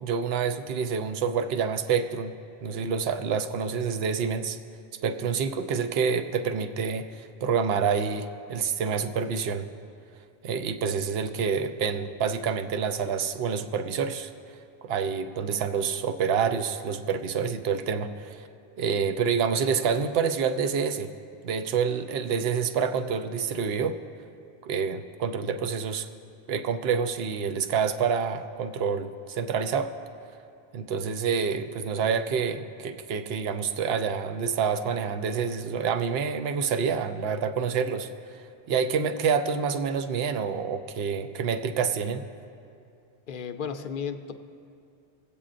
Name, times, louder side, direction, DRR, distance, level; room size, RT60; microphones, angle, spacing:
voice 1, 0.0-2.3 2.6-4.6 5.0-9.7 10.4-14.3 14.8-18.4 18.8-21.1 21.4-24.0 24.6-26.1 26.5-29.9 30.7-42.2, right 6 dB, 70° right, 8 dB, 0.8 m, -27 dB
voice 2, 43.3-44.3, left 7 dB, 60° left, 7 dB, 0.6 m, -34 dB
25.0 x 8.4 x 2.5 m, 2.5 s
omnidirectional pair, 1.1 m